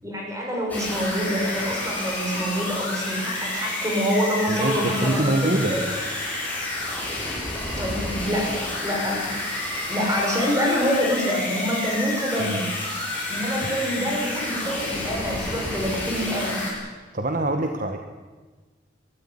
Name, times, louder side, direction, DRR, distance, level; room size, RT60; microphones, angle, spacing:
voice 1, 0.0-5.9 7.2-7.3 7.8-9.3 9.9-12.7 13.3-16.6, equal, 15° right, -1 dB, 6.7 m, -26 dB
sound 1, 0.7-16.7, left 2 dB, 10° left, 7.5 m, -30 dB
voice 2, 4.5-5.8 12.4-12.6 13.0-13.3 13.6-13.7 17.1-18.0, right 1 dB, 45° right, 5 dB, 1.3 m, -25 dB
22.5 x 14.0 x 9.9 m, 1.3 s
head